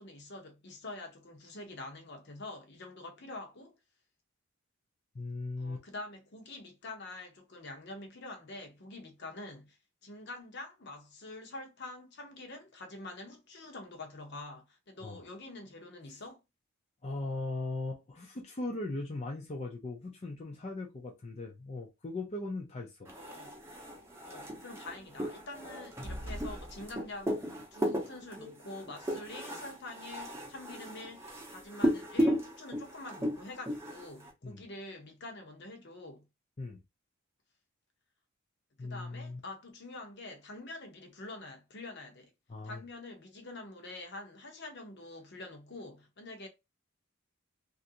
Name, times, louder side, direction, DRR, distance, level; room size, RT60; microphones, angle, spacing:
voice 1, 0.0-3.8 5.6-16.4 23.0-23.5 24.2-27.4 27.7-36.3 38.8-42.3 42.6-46.5, left 2 dB, 55° left, 0.9 m, -46 dB
voice 2, 5.1-5.8 15.0-15.2 17.0-23.1 34.4-34.6 36.6-36.8 38.8-39.4 42.5-42.8, left 2 dB, 30° left, 0.5 m, -38 dB
sound 1, 23.1-34.3, equal, 15° right, 0.7 m, -35 dB
3.1 x 2.6 x 2.8 m
head